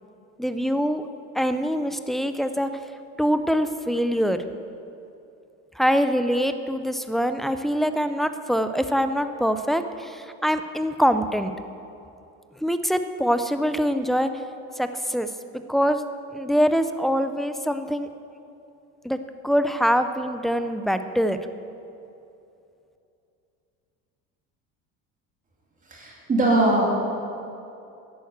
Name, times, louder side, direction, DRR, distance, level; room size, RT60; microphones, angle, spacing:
voice 1, 0.4-1.1 1.3-2.7 3.2-4.4 5.8-11.5 12.6-14.4 14.8-15.3 15.7-16.0 16.3-18.1 19.0-21.4, equal, ahead, 9 dB, 0.4 m, -24 dB
voice 2, 25.9-26.8, right 2 dB, 25° right, -2 dB, 2.8 m, -21 dB
11.5 x 11.0 x 7.8 m, 2.7 s
cardioid pair, 150°, 33 cm